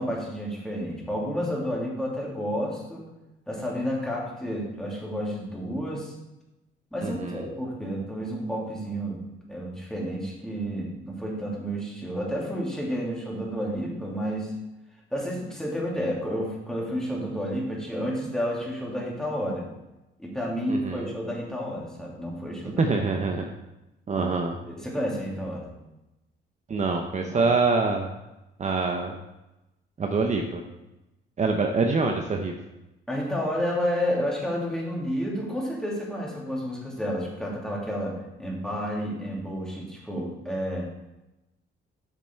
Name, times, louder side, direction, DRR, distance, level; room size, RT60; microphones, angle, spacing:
voice 1, 0.0-3.1 3.5-6.1 6.9-9.2 9.5-14.5 15.1-19.7 20.2-22.8 24.2-24.3 24.7-25.7 27.2-27.5 33.1-40.9, equal, 5° left, -3 dB, 2.8 m, -30 dB
voice 2, 7.0-7.4 20.7-21.1 22.6-23.4 24.1-24.5 26.7-28.1 28.6-29.2 30.0-30.6 31.4-32.5, right 4 dB, 35° right, 3 dB, 0.8 m, -25 dB
8.5 x 6.0 x 4.5 m, 0.97 s
cardioid pair, 90°, 20 cm